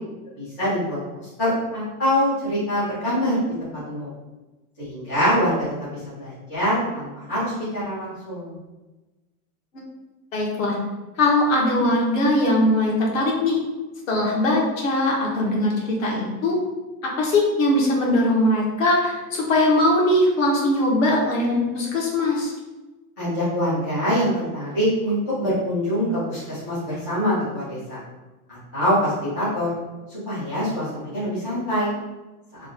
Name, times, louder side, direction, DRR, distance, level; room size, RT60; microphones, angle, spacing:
voice 1, 0.4-1.0 1.4-4.1 4.8-5.5 5.8-8.6 23.2-28.0 28.5-29.7 30.1-31.9, equal, 15° left, -14 dB, 0.3 m, -24 dB
voice 2, 10.3-10.8 11.2-13.6 14.1-16.5 17.2-22.5, left 1 dB, 55° left, -1 dB, 1.0 m, -20 dB
3.1 x 2.3 x 3.6 m, 1.1 s
supercardioid pair, 170°, 46 cm